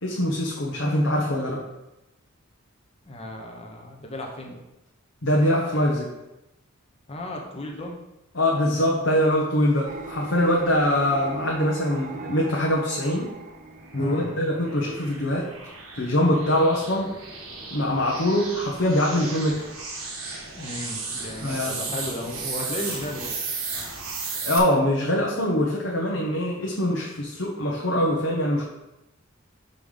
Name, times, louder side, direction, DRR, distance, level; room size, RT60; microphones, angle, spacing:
voice 1, 0.0-1.6 5.2-6.1 8.3-13.3 13.9-15.5 15.9-17.1 17.7-19.6 21.4-21.9 24.4-28.7, left 1 dB, 60° left, -3 dB, 1.1 m, -23 dB
voice 2, 3.1-4.6 7.1-7.9 10.6-10.7 13.9-14.4 20.6-23.3, left 1 dB, 30° left, 1 dB, 1.0 m, -35 dB
sound 1, 9.9-16.2, right 4 dB, 40° right, 0.5 m, -41 dB
sound 2, 13.0-24.6, right 4 dB, 90° right, 1.7 m, -35 dB
5.5 x 5.0 x 5.6 m, 0.93 s
head